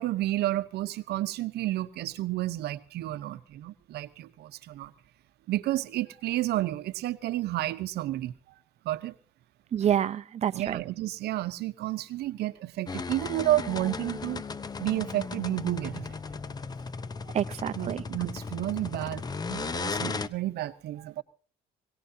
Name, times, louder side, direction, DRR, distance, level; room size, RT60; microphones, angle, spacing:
voice 1, 0.0-4.9 5.5-8.3 8.8-9.1 10.5-14.5 14.8-16.2 17.8-19.2 19.5-21.2, right 15 dB, 75° right, 12 dB, 0.9 m, -31 dB
voice 2, 9.7-10.8 17.3-18.0, right 9 dB, 40° right, 12 dB, 0.7 m, -27 dB
sound 1, 12.9-20.3, left 4 dB, 25° left, 0.7 m, -36 dB
21.5 x 18.0 x 2.8 m, 0.37 s
cardioid pair, 110°, 17 cm